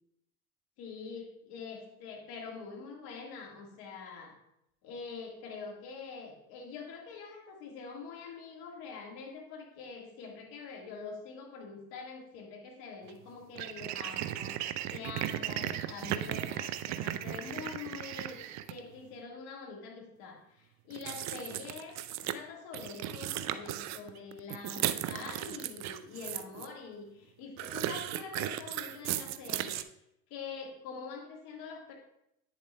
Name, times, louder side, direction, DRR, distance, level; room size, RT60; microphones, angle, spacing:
voice 1, 0.8-4.3 4.8-18.4 18.7-29.8 30.3-32.0, left 5 dB, 60° left, 1 dB, 1.8 m, -45 dB
sound 1, 13.1-13.2 13.6-18.8 20.9-22.3 22.7-26.7 27.6-29.8, right 13 dB, 40° right, 0.4 m, -36 dB
9.0 x 7.2 x 2.2 m, 0.80 s
hypercardioid pair, 85°, 44 cm